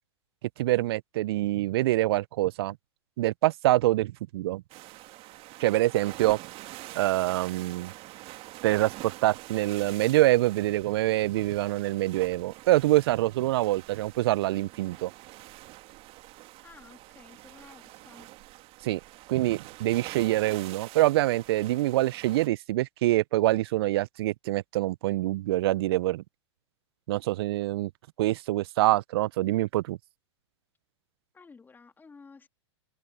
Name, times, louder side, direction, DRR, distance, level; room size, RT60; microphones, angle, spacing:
voice 1, 0.6-2.8 3.2-4.6 5.6-6.4 6.9-7.9 8.6-15.1 18.8-19.0 19.3-26.2 27.1-27.9 28.2-30.0, right 16 dB, 55° right, 0.8 m, -25 dB
sound 1, 4.7-22.5, right 19 dB, 40° right, 2.2 m, -46 dB
voice 2, 16.6-18.3 20.1-20.3 31.3-32.5, left 4 dB, 10° left, 3.1 m, -52 dB
hypercardioid pair, 105°, 15 cm